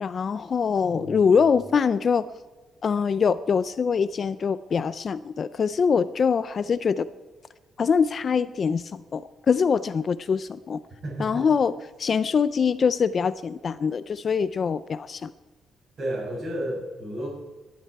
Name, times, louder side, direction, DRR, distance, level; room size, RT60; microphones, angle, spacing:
voice 1, 0.0-2.3 2.8-7.1 7.8-10.8 11.2-11.7 12.0-15.3, left 6 dB, 35° left, 15 dB, 0.4 m, -23 dB
voice 2, 0.9-1.4 11.0-11.5 16.0-17.3, right 1 dB, 35° right, -2 dB, 6.6 m, -32 dB
19.5 x 12.0 x 4.7 m, 1.3 s
cardioid pair, 175°, 0 cm